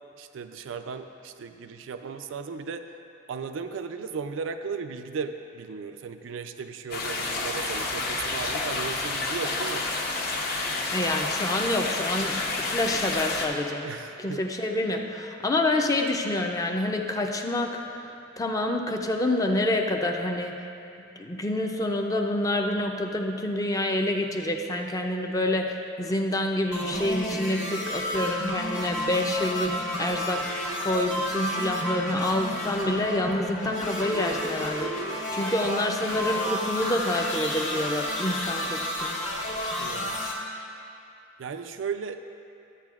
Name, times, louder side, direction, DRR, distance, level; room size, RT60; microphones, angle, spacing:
voice 1, 0.2-2.9 3.3-9.9 13.8-14.4 39.8-40.2 41.4-42.2, right 5 dB, 90° right, 8 dB, 0.4 m, -36 dB
sound 1, 6.9-13.5, left 3 dB, 55° left, 0.9 m, -29 dB
voice 2, 10.9-13.9 14.2-18.1 18.4-20.6 21.2-30.5 30.8-39.4, left 1 dB, 20° left, 2 dB, 0.5 m, -27 dB
sound 2, 26.7-40.3, equal, 85° left, 1.6 m, -31 dB
12.0 x 8.2 x 2.4 m, 2.6 s
head